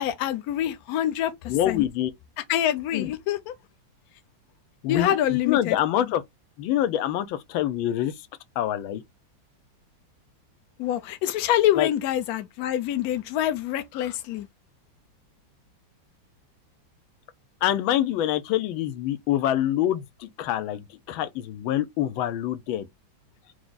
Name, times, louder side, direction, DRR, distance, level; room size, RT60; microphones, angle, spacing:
voice 1, 0.0-1.8 2.5-3.5 4.9-6.0 10.8-14.5, left 12 dB, 65° left, 1.0 m, -26 dB
voice 2, 1.5-2.1 2.9-3.1 4.8-6.2 6.6-8.2 8.6-9.0 11.7-11.9 17.6-22.9, left 12 dB, 85° left, 1.4 m, -26 dB
4.7 x 2.1 x 3.9 m
omnidirectional pair, 2.1 m